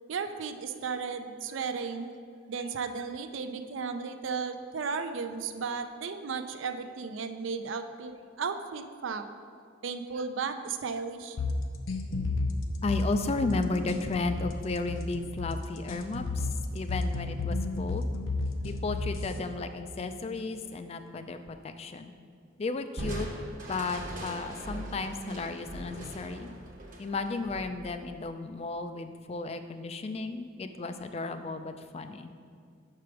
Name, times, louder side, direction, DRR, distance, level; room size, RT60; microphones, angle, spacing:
voice 1, 0.1-2.1 2.5-9.3 9.8-11.4, right 5 dB, 70° right, 9 dB, 0.4 m, -35 dB
sound 1, 11.4-19.4, left 3 dB, 80° left, 0.6 m, -32 dB
voice 2, 12.8-18.1 18.6-22.1 22.6-23.3 23.7-26.5 27.0-32.3, left 3 dB, 30° left, 9 dB, 0.3 m, -34 dB
Crushing, 23.0-28.4, right 1 dB, 40° right, 0.9 m, -41 dB
6.0 x 4.8 x 5.8 m, 2.2 s
head